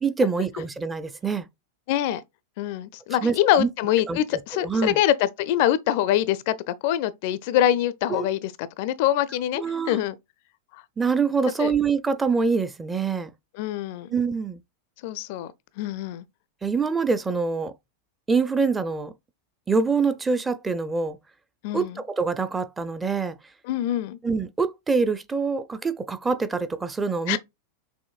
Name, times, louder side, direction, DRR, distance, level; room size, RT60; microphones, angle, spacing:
voice 1, 0.0-1.5 3.1-3.7 4.1-4.2 4.5-5.0 8.1-8.3 9.6-10.0 11.0-13.3 14.1-14.6 16.6-17.7 18.3-19.1 19.7-21.2 21.7-23.4 24.2-27.4, right 4 dB, 15° right, 0.5 m, -25 dB
voice 2, 1.9-2.2 2.6-8.5 8.8-10.2 11.6-11.7 13.6-14.1 15.0-15.5 15.8-16.2 21.6-21.9 23.7-24.2 27.3-27.4, left 12 dB, 50° left, 0.4 m, -24 dB
6.2 x 3.0 x 2.3 m
figure-of-eight pair, 90°, 0 cm